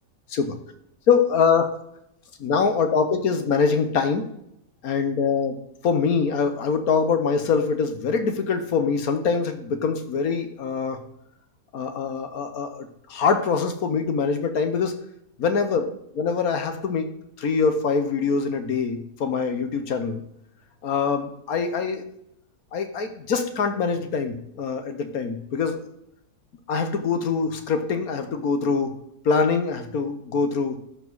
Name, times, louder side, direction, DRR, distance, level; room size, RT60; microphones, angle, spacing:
voice 1, 1.1-1.8 2.4-4.3 4.8-5.6 5.8-11.0 11.7-15.0 15.4-15.8 16.1-17.1 17.4-20.2 20.8-22.0 22.7-25.8 26.7-28.9 29.2-30.8, left 5 dB, 65° left, 8 dB, 1.4 m, -24 dB
12.5 x 4.9 x 4.0 m, 0.76 s
omnidirectional pair, 1.7 m